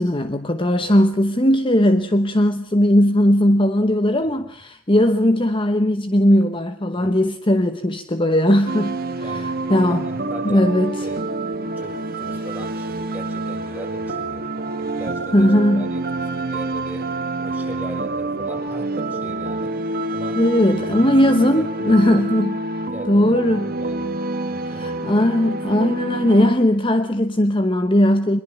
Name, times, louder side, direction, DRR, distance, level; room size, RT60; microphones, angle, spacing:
voice 1, 0.0-10.0 10.4-11.0 15.3-15.9 20.4-22.6 23.1-23.7 24.6-28.4, left 1 dB, 25° left, 0.9 m, -18 dB
sound 1, 8.7-26.5, right 2 dB, 45° right, 1.9 m, -27 dB
voice 2, 9.2-10.7 11.0-11.2 11.8-14.5 14.8-17.1 17.4-19.8 20.1-21.1 21.5-22.3 22.8-24.2 24.5-25.0, right 1 dB, 10° right, 6.8 m, -38 dB
24.0 x 22.5 x 7.1 m
head